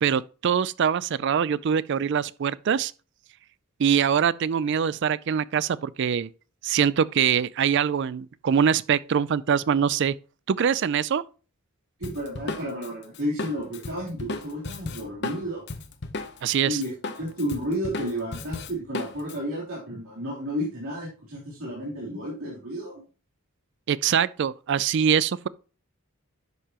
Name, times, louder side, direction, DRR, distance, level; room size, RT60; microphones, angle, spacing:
voice 1, 0.0-2.9 3.8-6.3 6.6-10.2 10.5-11.2 16.4-16.8 23.9-25.5, right 7 dB, 55° right, 0.4 m, -23 dB
Drum kit, 12.0-16.5 16.8-19.4, left 3 dB, 50° left, 0.8 m, -35 dB
voice 2, 12.0-15.7 16.6-23.0, equal, 85° right, 3.3 m, -32 dB
10.5 x 6.7 x 2.9 m
head